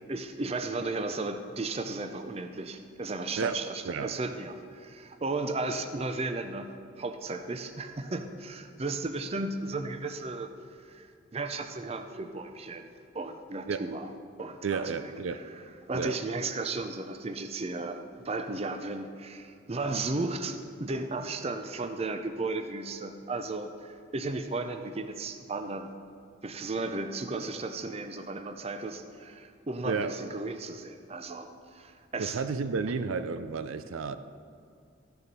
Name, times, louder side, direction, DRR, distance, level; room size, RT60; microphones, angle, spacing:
voice 1, 0.1-6.7 7.0-10.5 10.8-14.1 14.4-15.6 15.9-18.0 18.2-25.9 26.4-32.4, right 3 dB, 30° right, 8 dB, 0.5 m, -35 dB
voice 2, 3.4-4.1 13.7-13.8 14.6-15.4 15.9-16.2 29.9-30.1 32.2-34.2, right 5 dB, 90° right, 11 dB, 0.5 m, -32 dB
13.0 x 6.9 x 5.3 m, 2.3 s
head